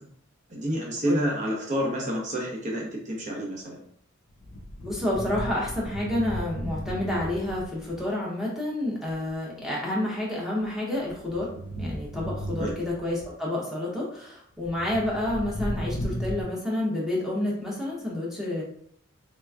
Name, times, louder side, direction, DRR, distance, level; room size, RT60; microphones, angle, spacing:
voice 1, 0.5-3.8 12.6-12.7, equal, 35° right, -2 dB, 0.9 m, -29 dB
sound 1, 4.3-8.1 9.1-9.3 10.6-13.2 14.6-16.4, equal, 80° left, 0.6 m, -35 dB
voice 2, 4.8-11.5 11.8-18.6, left 1 dB, ahead, -5 dB, 0.8 m, -29 dB
3.3 x 2.9 x 2.4 m, 0.65 s
head